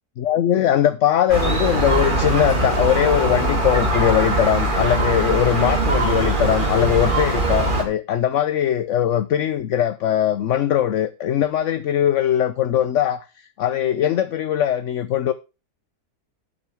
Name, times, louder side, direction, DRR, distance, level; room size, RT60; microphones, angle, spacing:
voice 1, 0.2-13.2 13.6-15.3, left 10 dB, 60° left, 0.9 m, -20 dB
Gull seagull, 1.3-7.8, right 2 dB, 30° right, 2.8 m, -21 dB
12.0 x 8.8 x 3.5 m
omnidirectional pair, 1.6 m